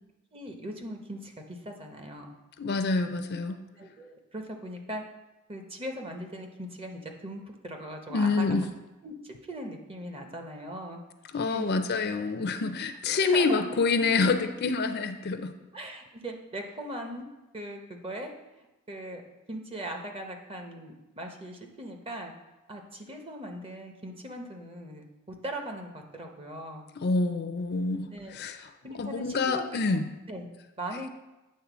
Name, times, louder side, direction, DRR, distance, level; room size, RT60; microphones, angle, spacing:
voice 1, 0.3-2.3 3.7-5.0 5.5-8.6 9.0-11.0 11.5-11.9 13.2-13.7 15.7-17.3 17.5-19.2 19.5-22.3 22.7-26.8 28.1-28.3 28.8-30.5 30.8-31.1, right 1 dB, 25° right, 3 dB, 0.8 m, -40 dB
voice 2, 2.6-3.6 8.1-8.7 11.3-15.5 27.0-28.7 29.0-30.0, left 4 dB, 50° left, 8 dB, 0.5 m, -27 dB
8.6 x 3.6 x 6.1 m, 1.1 s
head